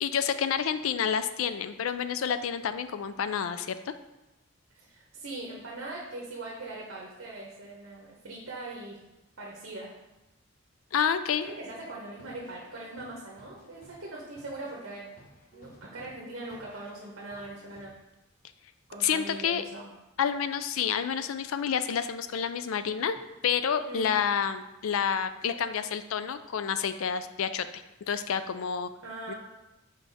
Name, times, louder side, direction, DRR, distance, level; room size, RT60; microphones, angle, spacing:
voice 1, 0.0-3.9 10.9-11.5 19.0-19.6 20.2-23.2 23.4-28.9 29.3-29.4, left 7 dB, 80° left, 12 dB, 0.4 m, -29 dB
voice 2, 4.7-9.0 9.4-9.9 11.4-15.1 15.5-17.9 18.9-19.9 23.8-24.1 29.0-29.3, right 2 dB, 65° right, -3 dB, 1.0 m, -41 dB
sound 1, 11.8-17.8, left 1 dB, 40° left, 1.0 m, -55 dB
5.6 x 4.7 x 4.0 m, 0.99 s
head